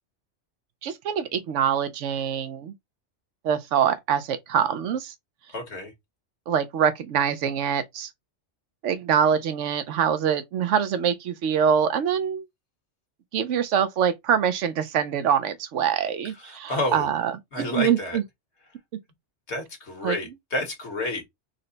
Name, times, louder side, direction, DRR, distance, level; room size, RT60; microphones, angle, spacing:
voice 1, 0.8-2.7 3.4-5.1 6.5-8.1 8.8-12.4 13.3-18.2 20.0-20.2, right 8 dB, 80° right, 1.0 m, -24 dB
voice 2, 5.5-5.9 16.4-17.1 17.5-18.2 19.5-21.2, left 2 dB, 70° left, 1.6 m, -30 dB
4.0 x 2.1 x 3.8 m
omnidirectional pair, 1.3 m